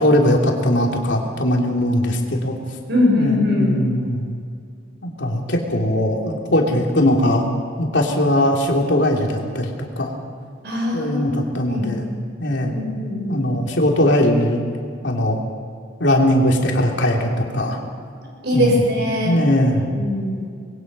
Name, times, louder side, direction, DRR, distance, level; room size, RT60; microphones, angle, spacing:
voice 1, 0.0-2.6 3.2-4.3 5.2-7.4 7.8-10.1 10.9-12.0 12.4-12.7 13.3-14.7 15.0-15.4 16.0-17.8 18.5-18.8 19.2-19.9, left 1 dB, 65° left, 0 dB, 3.3 m, -19 dB
voice 2, 2.9-3.7 10.6-11.2 11.7-11.9 12.7-13.4 18.4-19.4 19.9-20.4, left 1 dB, 55° right, -1 dB, 6.3 m, -21 dB
25.5 x 21.5 x 5.6 m, 2.2 s
head